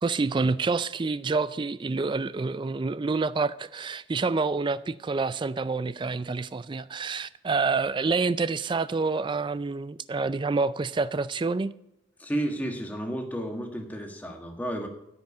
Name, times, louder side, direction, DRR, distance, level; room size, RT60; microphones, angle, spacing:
voice 1, 0.0-11.7, right 4 dB, 25° right, 0.3 m, -27 dB
voice 2, 12.2-14.9, right 1 dB, 10° left, 1.5 m, -32 dB
10.5 x 7.9 x 8.2 m
head